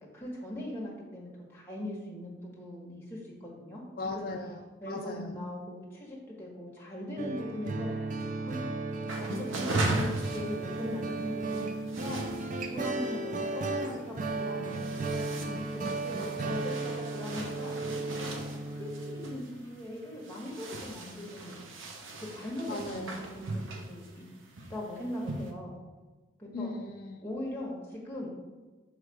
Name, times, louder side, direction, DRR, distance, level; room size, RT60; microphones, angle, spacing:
voice 1, 0.0-3.8 4.1-4.3 4.8-7.9 8.4-8.6 9.2-11.7 12.0-12.2 12.6-18.4 18.7-21.6 22.2-24.2 24.7-25.8 26.4-26.7 27.2-28.3, left 1 dB, 10° left, -4 dB, 1.2 m, -40 dB
voice 2, 4.0-5.4 16.2-16.6 22.7-23.2 26.5-27.2, left 2 dB, 50° left, 1 dB, 0.4 m, -38 dB
sound 1, 7.2-19.4, right 2 dB, 40° right, 0.4 m, -35 dB
sound 2, 9.1-25.5, right 2 dB, 85° right, 0.8 m, -39 dB
6.5 x 3.2 x 4.7 m, 1.3 s
head